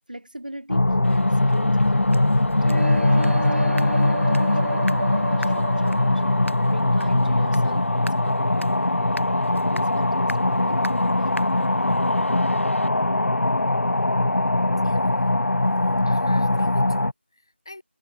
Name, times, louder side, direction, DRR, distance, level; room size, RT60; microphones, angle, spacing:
voice 1, 0.1-6.2 6.7-11.4, right 1 dB, 40° right, 5.1 m, -39 dB
sound 1, 0.7-17.1, left 2 dB, 75° left, 0.4 m, -21 dB
sound 2, 1.0-12.9, equal, 90° left, 7.0 m, -40 dB
sound 3, 2.6-8.5, right 1 dB, 70° right, 1.7 m, -31 dB
voice 2, 14.8-15.4 16.0-17.8, left 2 dB, 20° left, 7.0 m, -42 dB
figure-of-eight pair, 175°, 7 cm